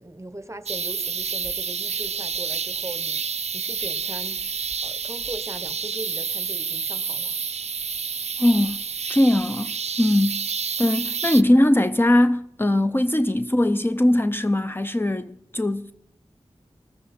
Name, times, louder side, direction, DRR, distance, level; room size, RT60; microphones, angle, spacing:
voice 1, 0.0-4.5 4.8-7.4, right 1 dB, 25° right, 1.0 m, -39 dB
sound 1, 0.7-11.4, right 6 dB, 75° right, 0.5 m, -29 dB
voice 2, 8.4-8.8 9.1-10.4 10.8-15.9, left 1 dB, 20° left, 0.6 m, -20 dB
20.0 x 14.0 x 4.3 m
wide cardioid pair, 55°, 11 cm